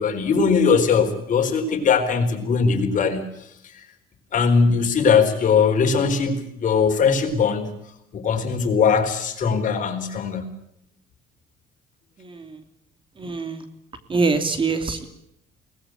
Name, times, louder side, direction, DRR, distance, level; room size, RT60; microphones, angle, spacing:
voice 1, 0.0-3.9 4.3-7.7 8.1-10.5, left 5 dB, 50° left, 5 dB, 4.4 m, -20 dB
voice 2, 12.2-12.6 13.2-13.6 14.1-15.1, right 4 dB, 30° right, 8 dB, 2.7 m, -24 dB
22.5 x 19.5 x 9.0 m, 0.75 s
cardioid pair, 110°, 17 cm